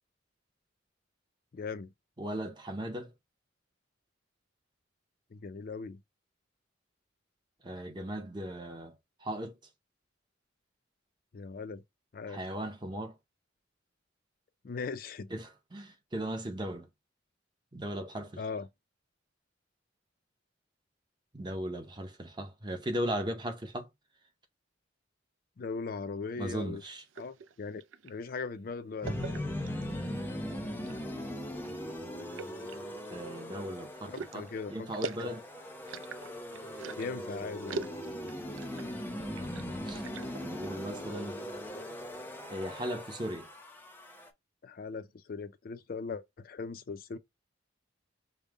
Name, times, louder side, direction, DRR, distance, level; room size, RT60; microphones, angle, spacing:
voice 1, 1.5-1.9 5.3-6.0 11.3-11.8 12.1-12.4 14.6-15.3 18.4-18.7 25.6-26.8 27.2-29.5 34.1-34.9 35.2-35.3 37.0-37.9 44.6-47.2, left 4 dB, 50° left, 0.4 m, -39 dB
voice 2, 2.2-3.1 7.6-8.9 9.2-9.6 12.3-13.1 15.3-16.9 17.7-18.4 21.3-23.9 26.4-27.0 33.1-35.4 39.9-40.0 40.4-41.4 42.5-43.5, right 1 dB, 25° right, 0.7 m, -37 dB
sound 1, 26.8-28.2 29.0-30.0 30.6-31.1 31.6-31.7 32.4-33.4 34.0-37.2 37.7-38.9 39.2-40.5, right 5 dB, 80° right, 0.4 m, -42 dB
sound 2, 29.0-44.3, left 1 dB, 10° left, 0.6 m, -40 dB
5.2 x 2.1 x 3.6 m
head